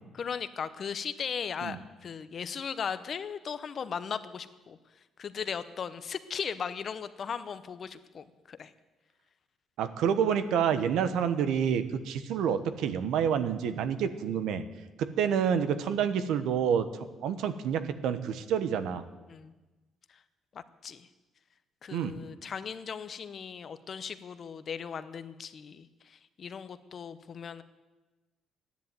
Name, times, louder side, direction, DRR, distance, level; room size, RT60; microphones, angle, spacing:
voice 1, 0.1-4.8 5.2-8.7 19.3-19.5 20.1-20.2 20.5-21.1 21.8-27.6, left 7 dB, 40° left, 13 dB, 0.8 m, -37 dB
voice 2, 9.8-14.6 15.0-16.9 17.2-19.0 21.9-22.2, right 8 dB, 85° right, 11 dB, 1.1 m, -28 dB
13.5 x 10.5 x 9.2 m, 1.2 s
cardioid pair, 160°, 0 cm